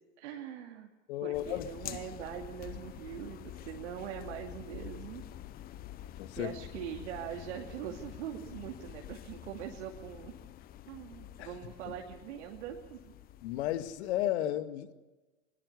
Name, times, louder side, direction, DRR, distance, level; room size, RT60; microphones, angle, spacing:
voice 1, 0.2-0.9 1.2-5.2 6.4-10.4 10.9-13.1, right 10 dB, 60° right, 1 dB, 2.7 m, -42 dB
voice 2, 1.1-1.7 6.2-6.5 11.4-11.5 11.9-12.0 13.4-14.9, left 13 dB, 55° left, 11 dB, 2.0 m, -33 dB
sound 1, 1.3-14.3, left 12 dB, 25° left, 0.7 m, -47 dB
23.0 x 22.0 x 6.9 m, 1.1 s
hypercardioid pair, 115°, 40 cm